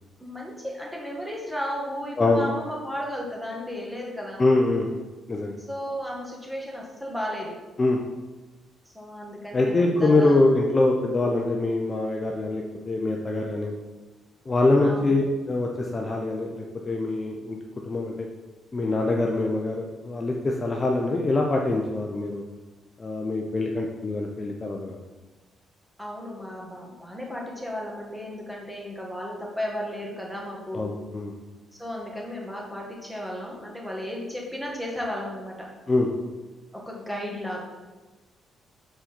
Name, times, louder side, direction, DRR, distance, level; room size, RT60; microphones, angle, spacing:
voice 1, 0.2-4.4 5.6-7.6 8.8-10.5 14.8-15.2 26.0-30.9 31.7-35.7 36.7-37.6, equal, 5° right, -2 dB, 1.6 m, -34 dB
voice 2, 4.4-4.9 5.3-5.5 7.8-8.0 9.5-13.7 14.5-17.6 17.9-18.3 18.7-22.4 23.0-25.0 30.7-31.3 35.9-36.1, left 2 dB, 30° left, 1 dB, 0.6 m, -24 dB
5.2 x 4.5 x 4.5 m, 1.2 s
cardioid pair, 90°, 0 cm